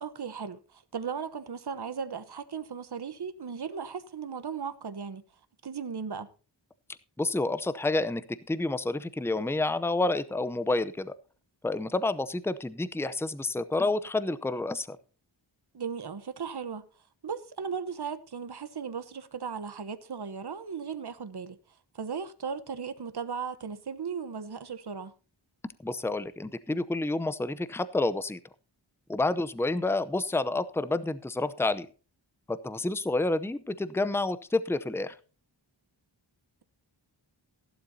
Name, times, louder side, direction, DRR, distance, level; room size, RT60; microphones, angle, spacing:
voice 1, 0.0-5.2 5.6-6.3 15.7-16.9 17.2-21.6 21.9-25.1, right 6 dB, 60° right, 1.1 m, -36 dB
voice 2, 7.2-11.2 11.6-15.0 25.8-28.4 29.1-31.9 32.5-35.1, left 2 dB, 5° left, 0.6 m, -29 dB
15.5 x 11.5 x 2.8 m
wide cardioid pair, 85°, 45 cm